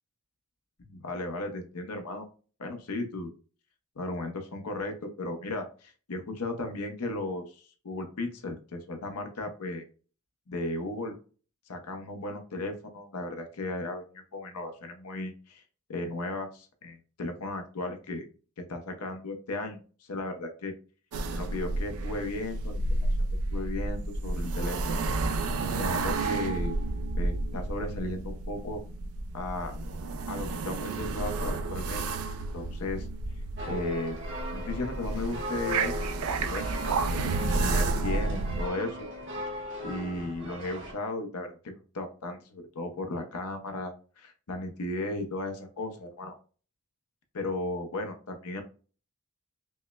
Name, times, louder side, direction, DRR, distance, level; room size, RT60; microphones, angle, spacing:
voice 1, 0.9-2.3 2.6-3.3 4.0-9.8 10.5-11.2 11.7-15.6 15.9-18.2 18.7-20.7 21.3-22.8 23.1-25.0 25.8-26.7 27.2-28.8 29.3-29.7 30.3-32.3 32.5-33.1 33.7-34.2 34.5-35.9 36.4-36.7 37.0-39.1 39.5-46.4 47.3-48.6, left 2 dB, 90° left, 5 dB, 0.7 m, -35 dB
sound 1, 21.1-38.7, right 3 dB, 75° right, 0.4 m, -31 dB
sound 2, 33.6-40.9, equal, 55° right, 1.1 m, -38 dB
5.3 x 2.1 x 2.2 m, 0.38 s
head